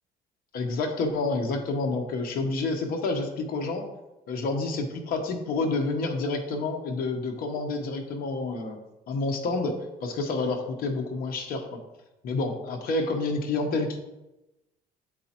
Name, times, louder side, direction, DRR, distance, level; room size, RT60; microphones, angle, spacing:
voice 1, 0.5-3.9 4.3-8.8 9.1-11.8 12.2-14.0, left 3 dB, 60° left, 3 dB, 1.0 m, -29 dB
9.2 x 4.1 x 2.9 m, 0.98 s
cardioid pair, 110°, 17 cm